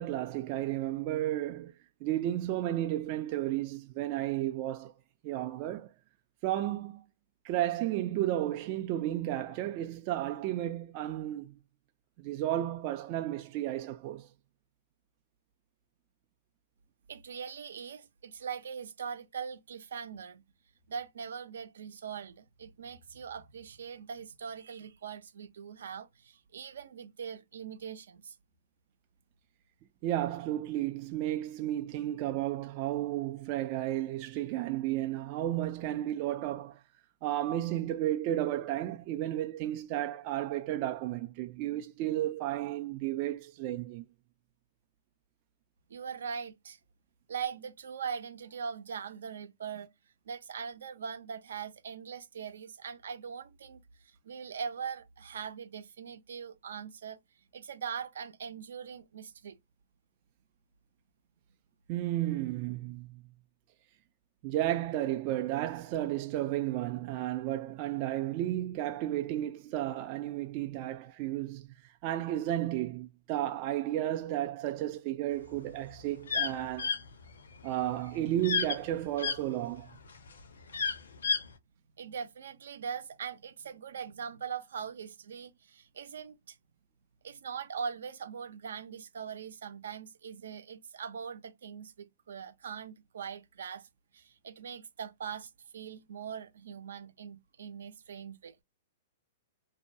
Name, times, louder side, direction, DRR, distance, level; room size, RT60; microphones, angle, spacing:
voice 1, 0.0-1.7 2.0-4.9 5.2-5.9 6.4-7.0 7.4-11.6 12.2-14.3 30.0-36.8 37.2-44.0 61.9-63.1 64.4-71.7 72.0-76.9 77.6-79.9, right 13 dB, 40° right, 0.4 m, -33 dB
voice 2, 17.1-20.4 20.9-28.3 45.9-46.8 47.3-49.9 50.3-57.2 57.5-59.6 82.0-86.6 87.2-93.9 94.1-98.6, right 7 dB, 80° right, 0.6 m, -41 dB
sound 1, 75.5-79.4 79.9-81.5, left 6 dB, 85° left, 0.7 m, -31 dB
2.7 x 2.1 x 2.7 m
hypercardioid pair, 130°, 0 cm